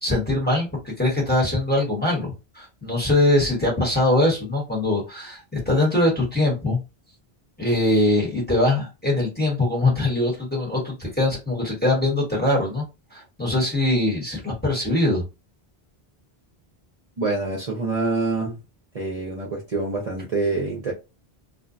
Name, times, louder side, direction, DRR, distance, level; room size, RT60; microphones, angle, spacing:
voice 1, 0.0-6.8 7.6-12.8 13.1-15.2, left 1 dB, 10° left, 1.1 m, -22 dB
voice 2, 17.2-18.6 18.9-20.9, right 3 dB, 40° right, 0.7 m, -26 dB
2.5 x 2.1 x 2.5 m
omnidirectional pair, 1.1 m